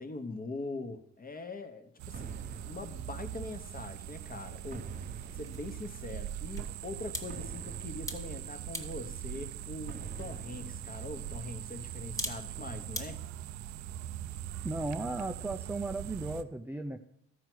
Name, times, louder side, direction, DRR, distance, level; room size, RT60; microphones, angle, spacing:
voice 1, 0.0-2.4 2.7-5.0 5.3-13.2, left 2 dB, 30° left, 7 dB, 1.1 m, -42 dB
sound 1, 2.0-16.4, right 12 dB, 70° right, 0.5 m, -41 dB
sound 2, 2.1-3.9 4.7-6.4 7.3-9.1 9.9-11.7, right 4 dB, 30° right, 0.8 m, -48 dB
sound 3, 5.2-13.1, left 1 dB, 10° left, 1.2 m, -46 dB
voice 2, 14.6-17.0, right 2 dB, 5° right, 5 dB, 0.4 m, -35 dB
13.0 x 4.6 x 6.1 m, 0.75 s
cardioid pair, 90°, 30 cm